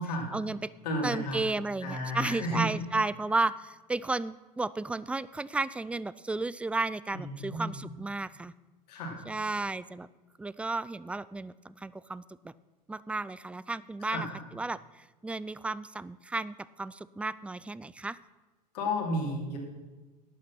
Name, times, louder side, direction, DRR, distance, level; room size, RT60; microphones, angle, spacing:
voice 1, 0.3-0.7 1.0-8.5 9.3-10.1 10.4-12.5 12.9-14.3 14.5-18.2, right 3 dB, 5° right, 18 dB, 0.3 m, -33 dB
voice 2, 0.8-1.4 1.8-2.7 7.1-7.7 8.9-9.2 14.0-14.3 18.7-19.6, left 1 dB, 75° left, 1 dB, 3.1 m, -32 dB
11.5 x 8.6 x 6.0 m, 1.2 s
hypercardioid pair, 85°, 21 cm